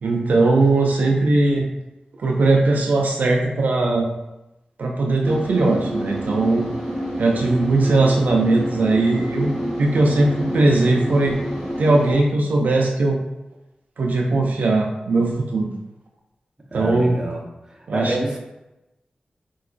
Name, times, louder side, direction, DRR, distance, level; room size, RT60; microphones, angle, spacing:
voice 1, 0.0-1.7 2.2-4.1 4.8-6.7 7.2-9.5 9.8-11.4 11.8-13.2 14.0-15.7 16.7-17.2 17.9-18.2, right 2 dB, 75° right, 0 dB, 0.4 m, -19 dB
sound 1, 5.2-12.1, equal, 5° left, 1.0 m, -28 dB
voice 2, 16.7-17.4 17.7-18.4, right 1 dB, 25° right, -1 dB, 0.6 m, -27 dB
4.3 x 2.2 x 2.4 m, 0.96 s
wide cardioid pair, 135°, 3 cm